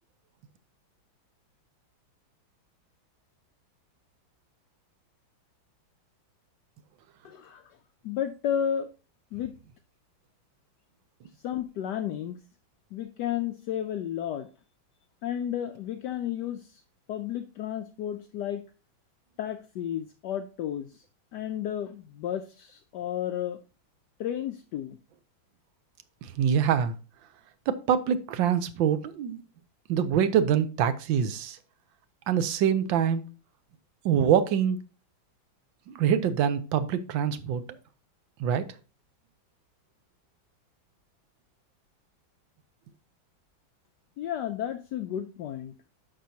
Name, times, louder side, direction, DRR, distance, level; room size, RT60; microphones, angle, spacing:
voice 1, 7.2-7.7 8.0-8.9 9.3-9.5 11.4-12.4 12.9-14.5 15.2-16.8 17.1-18.6 19.4-21.0 21.3-23.6 24.2-25.0 44.2-45.7, left 10 dB, 75° left, 1.0 m, -32 dB
voice 2, 26.2-26.9 27.7-29.4 29.9-31.6 32.3-33.2 34.0-34.8 35.9-37.6 38.4-38.7, right 8 dB, 75° right, 1.5 m, -25 dB
10.0 x 6.0 x 2.8 m
omnidirectional pair, 2.2 m